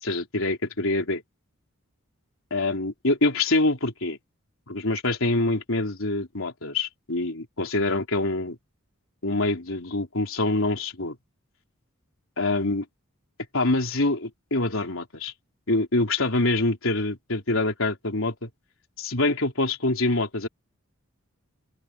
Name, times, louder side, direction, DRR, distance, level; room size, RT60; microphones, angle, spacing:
voice 1, 0.0-1.2 2.5-4.2 4.7-8.6 9.2-11.2 12.4-12.9 13.5-15.3 15.7-18.5 19.0-20.5, left 2 dB, 65° left, 3.7 m, -25 dB
open air
head